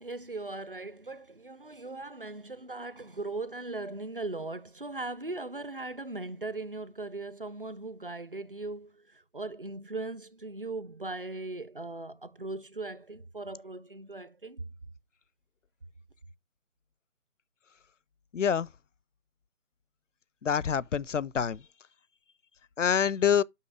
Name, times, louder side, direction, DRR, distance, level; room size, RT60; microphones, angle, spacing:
voice 1, 0.0-14.6, right 2 dB, 40° right, 0.4 m, -39 dB
voice 2, 18.3-18.7 20.4-21.6 22.8-23.4, left 7 dB, 60° left, 0.5 m, -26 dB
6.1 x 5.6 x 4.7 m
figure-of-eight pair, 155°, 43 cm